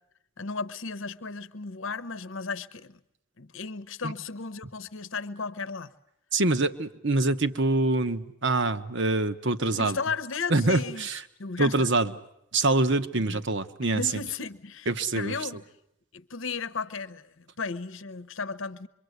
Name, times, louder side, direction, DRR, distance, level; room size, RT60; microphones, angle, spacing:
voice 1, 0.4-3.0 3.4-5.9 9.8-11.1 11.4-11.9 13.1-13.4 13.8-14.9 15.1-15.6 16.1-18.9, left 4 dB, 70° left, 0.9 m, -35 dB
voice 2, 6.3-10.0 10.5-11.2 11.6-12.1 12.5-14.0 14.9-15.3, right 2 dB, 60° right, 1.1 m, -25 dB
25.5 x 24.0 x 8.1 m
head